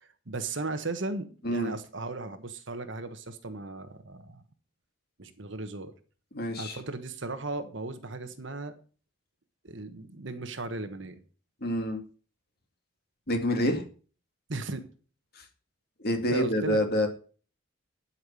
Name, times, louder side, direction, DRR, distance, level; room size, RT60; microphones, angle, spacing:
voice 1, 0.0-4.4 5.2-5.9 6.6-8.7 9.6-11.2 14.5-14.9 16.3-16.8, right 2 dB, 65° right, 10 dB, 1.3 m, -36 dB
voice 2, 6.3-6.8 11.6-12.0 13.3-13.8 16.0-17.1, left 1 dB, 50° left, 5 dB, 2.4 m, -27 dB
11.5 x 5.9 x 7.0 m, 0.39 s
head